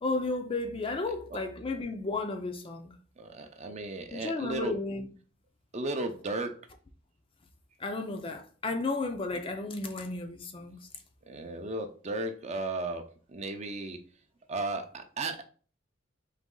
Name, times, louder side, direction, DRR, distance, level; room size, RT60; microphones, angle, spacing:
voice 1, 0.0-2.9 4.1-5.1 7.8-10.8, left 3 dB, 25° left, 0.4 m, -33 dB
voice 2, 3.2-4.8 5.7-6.5 11.3-13.0 13.3-14.0 14.5-15.4, right 2 dB, 35° right, 0.5 m, -35 dB
4.1 x 3.0 x 3.7 m
head